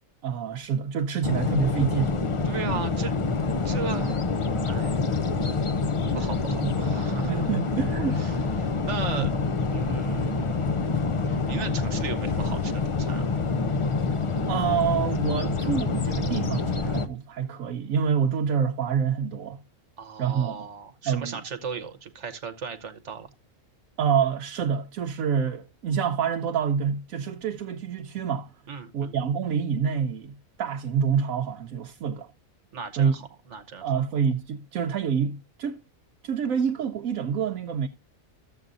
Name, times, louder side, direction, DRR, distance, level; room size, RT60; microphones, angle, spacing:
voice 1, 0.2-2.2 6.6-6.8 7.2-8.2 9.1-9.3 14.5-19.6 20.2-20.6 21.1-21.4 24.0-28.5 28.9-32.3 33.0-33.1 33.8-35.8 36.2-37.9, right 7 dB, 90° right, 1.1 m, -27 dB
sound 1, 1.2-17.1, left 4 dB, 50° left, 0.4 m, -26 dB
voice 2, 2.4-3.1 3.6-4.2 4.6-5.0 6.1-7.5 8.1-9.3 9.7-13.3 20.0-23.3 28.7-29.2 32.7-33.9, right 6 dB, 60° right, 1.2 m, -37 dB
14.0 x 7.6 x 2.6 m
omnidirectional pair, 1.4 m